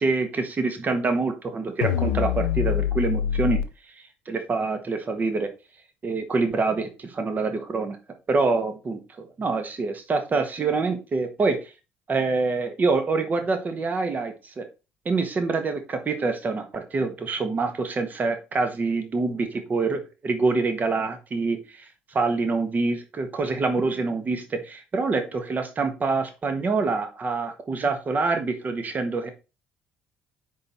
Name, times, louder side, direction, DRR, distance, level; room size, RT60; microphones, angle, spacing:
voice 1, 0.0-3.6 4.3-5.5 6.0-8.0 8.3-11.7 12.1-14.7 15.1-29.3, right 3 dB, 30° right, 7 dB, 1.6 m, -26 dB
sound 1, 1.8-3.6, left 10 dB, 65° left, 0.6 m, -24 dB
9.5 x 4.1 x 4.4 m, 0.30 s
figure-of-eight pair, 55°, 5 cm